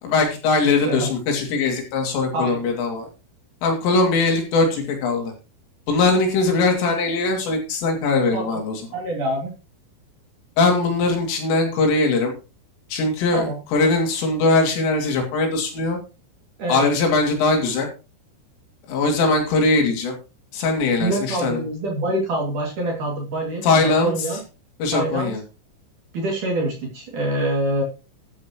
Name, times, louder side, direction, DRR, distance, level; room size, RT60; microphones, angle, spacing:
voice 1, 0.0-3.1 3.6-5.3 5.9-8.8 10.6-12.3 12.9-16.0 16.7-17.9 18.9-20.1 20.5-21.6 23.6-24.1 24.8-25.4, left 3 dB, 75° left, 2 dB, 5.1 m, -20 dB
voice 2, 0.6-1.1 2.3-2.6 8.3-8.6 8.9-9.5 13.3-13.6 16.6-16.8 21.0-24.4 24.9-25.3 26.1-27.8, right 1 dB, 45° right, 0 dB, 3.4 m, -25 dB
13.0 x 10.5 x 3.0 m, 0.32 s
omnidirectional pair, 5.9 m